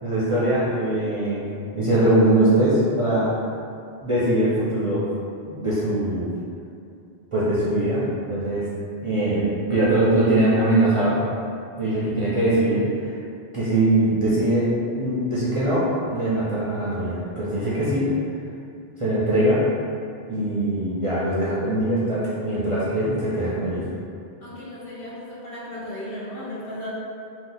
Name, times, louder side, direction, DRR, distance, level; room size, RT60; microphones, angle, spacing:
voice 1, 0.0-3.3 4.0-5.1 5.5-6.3 7.3-8.0 8.3-8.7 9.0-11.2 11.8-13.1 13.5-18.1 19.0-19.6 20.3-23.8, right 1 dB, 45° right, -10 dB, 0.5 m, -22 dB
voice 2, 24.4-26.9, left 1 dB, 65° left, -8 dB, 1.0 m, -36 dB
2.7 x 2.2 x 3.8 m, 2.5 s
omnidirectional pair, 1.1 m